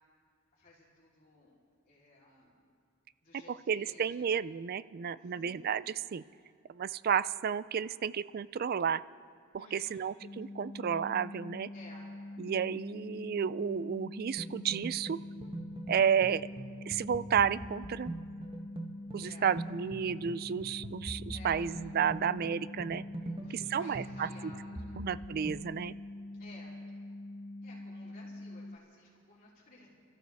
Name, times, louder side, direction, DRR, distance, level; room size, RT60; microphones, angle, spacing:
voice 1, 0.5-1.5 1.9-2.6 3.2-4.3 5.2-5.6 9.6-10.0 11.7-12.1 19.2-19.5 21.3-21.7 23.2-25.1 26.4-26.8 27.6-29.9, left 2 dB, 45° left, -7 dB, 3.4 m, -56 dB
voice 2, 3.5-6.2 6.7-9.0 9.7-11.7 12.4-15.2 15.9-16.5 16.9-18.1 19.1-23.0 23.5-24.3 25.0-25.9, right 7 dB, 45° right, 17 dB, 0.3 m, -32 dB
sound 1, 10.2-28.8, left 2 dB, 25° left, 0.4 m, -45 dB
sound 2, 14.4-25.6, right 2 dB, 25° right, 1.2 m, -44 dB
29.0 x 14.0 x 3.5 m, 2.2 s
head